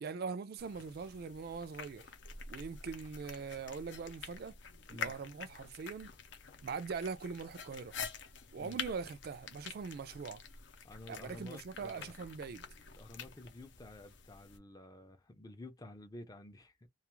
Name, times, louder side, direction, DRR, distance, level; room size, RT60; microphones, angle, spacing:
voice 1, 0.0-2.1 2.5-4.6 4.9-6.1 6.6-7.9 8.5-10.4 11.1-12.6, right 5 dB, 55° right, 0.4 m, -42 dB
sound 1, 0.6-14.6, left 5 dB, 75° left, 0.6 m, -48 dB
voice 2, 10.8-12.1 12.9-16.9, left 2 dB, 20° left, 0.5 m, -51 dB
2.4 x 2.3 x 3.0 m
head